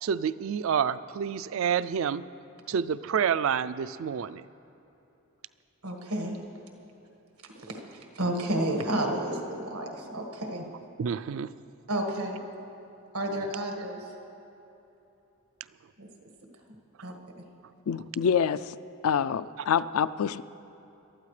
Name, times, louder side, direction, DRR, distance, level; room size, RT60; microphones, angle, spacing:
voice 1, 0.0-2.2 2.7-4.4 11.0-11.5 17.0-17.1, right 7 dB, 65° right, 16 dB, 0.3 m, -28 dB
voice 2, 5.8-6.4 7.4-10.7 11.9-12.4 13.1-14.1 16.0-16.1 17.0-17.1, right 1 dB, 90° right, 2 dB, 1.7 m, -31 dB
voice 3, 17.9-18.7 19.0-20.4, left 7 dB, 80° left, 15 dB, 0.3 m, -26 dB
23.0 x 13.0 x 3.3 m, 3.0 s
head